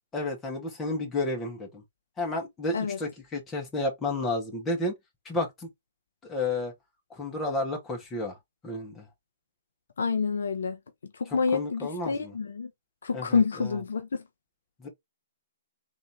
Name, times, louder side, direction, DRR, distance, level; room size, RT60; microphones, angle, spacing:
voice 1, 0.1-1.8 2.2-4.9 5.3-5.7 6.2-6.7 7.1-8.4 8.6-9.1 11.5-12.3 13.1-13.8 14.8-14.9, left 2 dB, 15° left, 1.8 m, -31 dB
voice 2, 10.0-10.8 11.1-12.7 13.0-14.2, left 5 dB, 70° left, 0.6 m, -28 dB
3.6 x 3.1 x 3.5 m
figure-of-eight pair, 125°, 0 cm